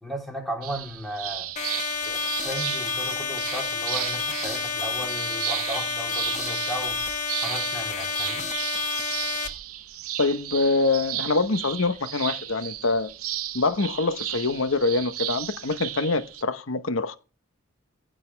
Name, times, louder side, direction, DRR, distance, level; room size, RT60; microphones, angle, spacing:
voice 1, 0.0-1.5 2.0-7.0 7.4-8.4, equal, ahead, 3.4 m, -35 dB
sound 1, 0.6-16.4, right 13 dB, 90° right, 0.8 m, -34 dB
sound 2, 1.6-9.5, left 5 dB, 35° left, 1.2 m, -30 dB
voice 2, 10.2-13.1 13.5-17.2, left 3 dB, 70° left, 0.9 m, -25 dB
15.5 x 6.7 x 3.3 m
head